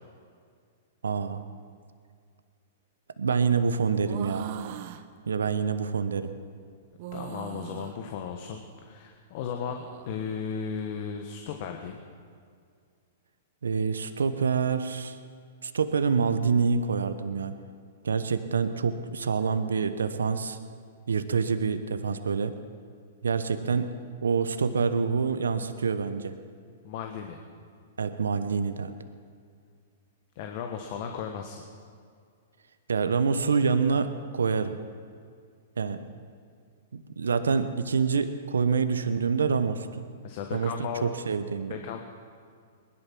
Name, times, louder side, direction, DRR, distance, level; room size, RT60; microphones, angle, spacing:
voice 1, 1.0-1.4 3.2-4.5 5.3-6.3 13.6-15.2 15.6-17.5 18.0-20.6 21.1-22.5 23.2-23.9 24.2-26.3 28.0-28.9 32.9-34.8 35.8-36.0 36.9-39.9 40.5-40.7 41.0-41.7, right 5 dB, 85° right, 10 dB, 0.9 m, -26 dB
sound 1, 4.0-5.0 7.0-8.0 9.5-10.1, right 11 dB, 55° right, 0.9 m, -39 dB
voice 2, 7.1-12.0 26.8-27.4 30.3-31.6 40.2-41.1 41.7-42.0, left 7 dB, 55° left, 4 dB, 1.3 m, -35 dB
20.0 x 11.5 x 6.1 m, 2.1 s
hypercardioid pair, 115°, 0 cm